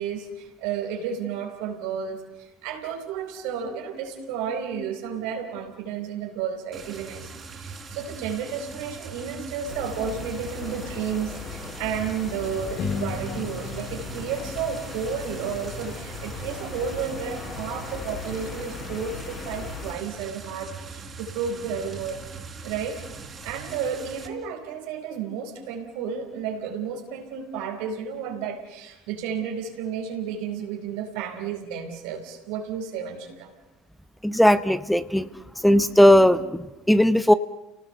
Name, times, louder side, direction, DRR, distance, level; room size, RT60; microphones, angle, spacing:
voice 1, 0.0-22.2 22.6-23.0 23.4-33.5, right 7 dB, 70° right, 4 dB, 4.4 m, -32 dB
sound 1, 6.7-24.3, right 4 dB, 30° right, 4.2 m, -41 dB
sound 2, 9.7-19.9, left 4 dB, 40° left, 5.8 m, -38 dB
Strum, 12.7-18.0, left 4 dB, 60° left, 6.3 m, -37 dB
voice 2, 34.2-35.3 35.6-37.3, equal, 5° left, 13 dB, 0.9 m, -18 dB
30.0 x 18.5 x 6.8 m, 1.0 s
hypercardioid pair, 75°, 0 cm